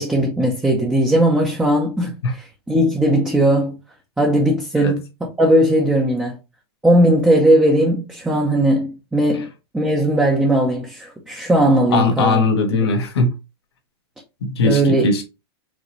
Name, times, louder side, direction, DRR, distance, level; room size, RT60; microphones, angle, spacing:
voice 1, 0.0-3.8 4.2-6.4 6.8-9.5 9.7-12.4 14.6-15.1, right 1 dB, 5° right, 0.9 m, -18 dB
voice 2, 11.9-13.3 14.4-15.2, left 3 dB, 80° left, 1.7 m, -19 dB
5.1 x 2.9 x 3.2 m
hypercardioid pair, 135°, 13 cm